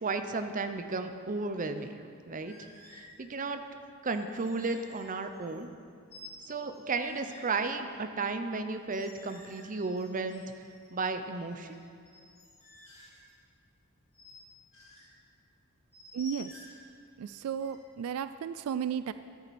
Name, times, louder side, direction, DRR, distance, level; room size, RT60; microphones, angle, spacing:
voice 1, 0.0-2.0 2.3-2.5 2.9-3.6 4.0-5.7 6.4-10.4 10.9-11.8, right 3 dB, 40° right, 8 dB, 0.7 m, -34 dB
sound 1, 2.4-3.2 4.1-5.8 6.1-7.5 8.8-10.9 11.3-13.3 14.1-14.3 14.7-15.1 15.9-16.9 17.6-17.8, left 2 dB, 30° left, 3.2 m, -52 dB
voice 2, 16.1-16.5 17.2-19.1, right 8 dB, 80° right, 13 dB, 0.3 m, -34 dB
13.0 x 11.0 x 4.2 m, 2.3 s
head